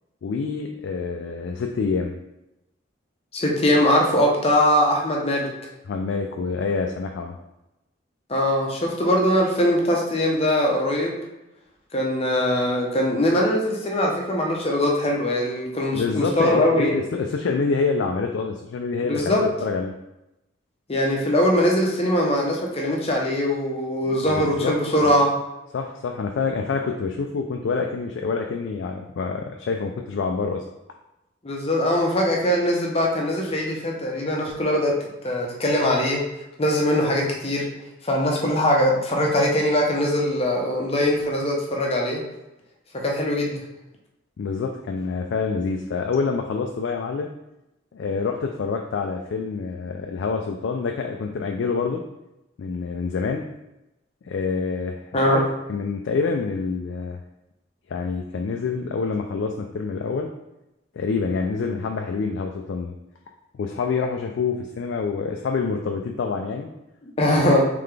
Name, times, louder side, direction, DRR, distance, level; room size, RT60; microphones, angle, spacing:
voice 1, 0.2-2.1 5.9-7.3 15.9-19.9 24.0-24.7 25.0-25.2 25.7-30.6 44.4-47.3 47.9-52.0 52.6-53.4 54.2-55.0 55.2-55.4 55.7-57.2 57.9-60.3 60.9-62.9 63.5-66.7 67.4-67.5, left 4 dB, 65° left, 3 dB, 0.3 m, -27 dB
voice 2, 3.3-5.5 8.3-11.2 11.9-17.0 19.0-19.4 20.9-25.3 31.4-34.9 35.2-36.2 36.6-37.7 38.0-42.2 43.0-43.6 55.1-55.4 67.2-67.7, left 1 dB, 30° left, -1 dB, 0.7 m, -21 dB
3.9 x 3.3 x 3.3 m, 0.93 s
head